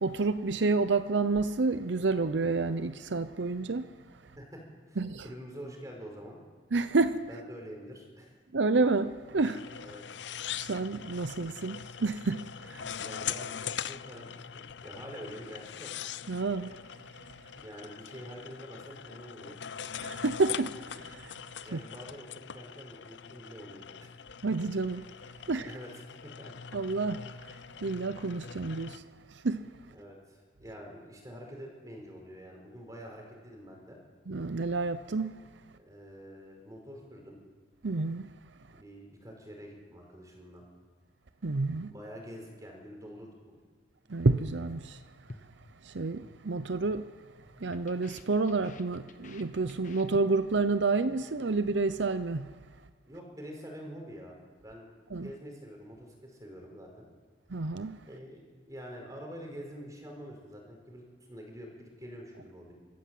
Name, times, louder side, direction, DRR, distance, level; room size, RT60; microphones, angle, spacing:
voice 1, 0.0-3.9 5.0-5.2 6.7-7.3 8.5-9.6 10.6-12.9 16.3-16.8 20.0-21.3 21.7-21.8 24.4-25.1 25.5-25.7 26.7-27.5 27.8-29.0 29.3-29.7 34.3-35.4 37.8-38.3 41.4-41.9 44.1-45.0 45.8-47.1 47.6-52.5 55.1-55.3 57.5-58.0, right 3 dB, 80° right, 0.7 m, -29 dB
voice 2, 4.9-6.4 7.3-8.4 9.8-10.1 12.9-14.3 14.5-15.9 17.6-19.6 21.6-24.1 25.6-26.5 29.9-34.0 35.8-37.4 38.7-40.7 41.9-43.6 53.1-54.4 54.6-57.1 58.1-62.7, equal, 20° right, 4.8 m, -46 dB
sound 1, 9.4-29.0, left 8 dB, 80° left, 0.6 m, -42 dB
sound 2, 45.3-46.4 46.7-47.0 47.3-50.7 50.9-51.2 51.5-51.9, left 2 dB, 45° left, 1.2 m, -51 dB
25.5 x 14.5 x 7.8 m
head